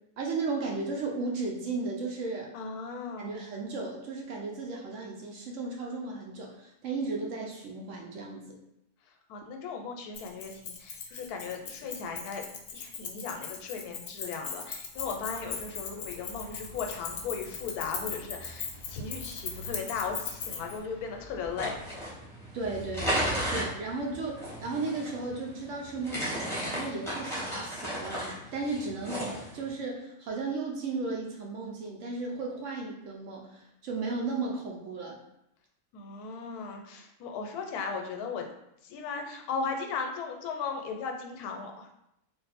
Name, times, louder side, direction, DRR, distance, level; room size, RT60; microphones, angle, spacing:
voice 1, 0.2-2.5 3.2-8.5 22.5-29.3 29.5-35.2, right 3 dB, 65° right, -1 dB, 0.8 m, -35 dB
voice 2, 2.5-3.3 9.3-12.4 12.7-21.8 35.9-38.5 38.8-41.9, left 5 dB, 85° left, 3 dB, 1.1 m, -37 dB
Keys jangling, 10.1-20.8, left 6 dB, 65° left, 0.8 m, -39 dB
sound 1, 14.9-22.1, left 1 dB, 45° left, 0.3 m, -49 dB
sound 2, 21.5-29.7, equal, 5° left, 0.7 m, -35 dB
2.5 x 2.5 x 4.0 m, 0.81 s
omnidirectional pair, 1.6 m